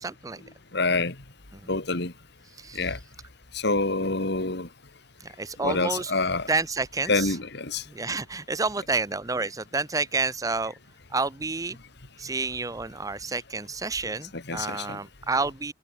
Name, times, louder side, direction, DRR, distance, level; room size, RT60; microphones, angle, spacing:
voice 1, 0.0-0.4 2.6-2.8 5.4-6.1 6.5-7.3 7.9-10.7 11.1-11.8 12.2-15.7, right 3 dB, 20° right, 0.7 m, -29 dB
voice 2, 0.7-1.1 1.7-2.1 2.7-3.0 3.6-4.7 5.6-6.5 7.1-7.8 14.3-15.0, left 3 dB, 60° left, 2.5 m, -26 dB
head